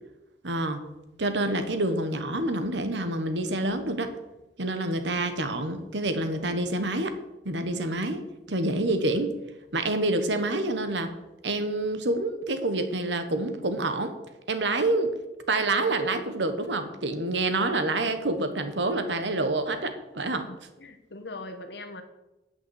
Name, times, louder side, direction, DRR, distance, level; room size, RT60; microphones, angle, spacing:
voice 1, 0.4-0.9 1.2-4.1 4.6-7.1 7.4-9.3 9.7-11.1 11.4-14.1 14.5-15.1 15.5-20.5, right 2 dB, 85° right, 9 dB, 1.2 m, -27 dB
voice 2, 20.2-22.0, left 2 dB, 70° left, 6 dB, 1.3 m, -41 dB
8.6 x 6.0 x 7.9 m, 1.0 s
head